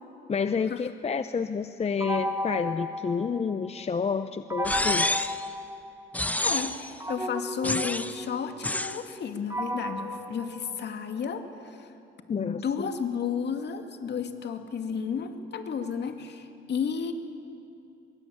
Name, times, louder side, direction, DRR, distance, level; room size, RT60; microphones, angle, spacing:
voice 1, 0.3-5.1 12.3-12.9, left 5 dB, 30° left, 10 dB, 0.8 m, -29 dB
sound 1, 2.0-3.8 4.5-6.3 7.0-11.3, left 1 dB, 15° right, 2.5 m, -34 dB
sound 2, 4.6-5.4 6.1-6.9 7.6-8.2 8.6-9.0, left 1 dB, 10° left, 0.9 m, -28 dB
voice 2, 6.4-11.9 12.3-17.1, left 6 dB, 60° left, 6 dB, 2.4 m, -32 dB
24.0 x 22.5 x 8.7 m, 2.6 s
cardioid pair, 90°, 20 cm